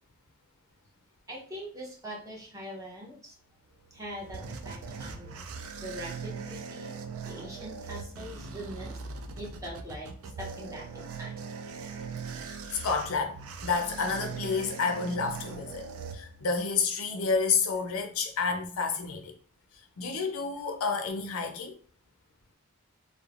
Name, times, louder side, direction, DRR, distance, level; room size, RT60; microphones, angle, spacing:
voice 1, 1.3-3.3 3.9-5.4 5.8-6.9 7.2-10.1 10.4-11.5, equal, 15° right, 0.6 m, -42 dB
sound 1, 3.7-16.7, right 5 dB, 75° right, 0.4 m, -40 dB
voice 2, 12.4-15.8 16.1-19.3 20.0-21.8, left 5 dB, 75° left, 0.5 m, -30 dB
3.0 x 2.0 x 2.4 m
head